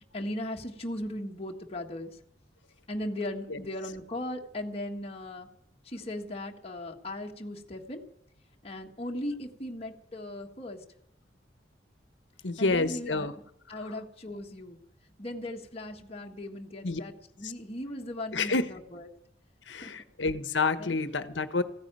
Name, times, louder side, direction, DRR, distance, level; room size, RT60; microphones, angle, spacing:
voice 1, 0.1-2.2 2.9-5.5 5.8-8.0 8.6-10.8 12.6-13.3 13.7-14.8 15.2-19.0 19.7-19.9 20.8-21.0, left 1 dB, 35° left, 1 dB, 1.6 m, -38 dB
voice 2, 12.4-13.3 13.9-14.0 16.8-17.0 17.4-17.5 18.3-18.7 19.7-21.6, left 3 dB, 85° left, 12 dB, 1.2 m, -29 dB
16.0 x 9.6 x 9.0 m, 0.74 s
head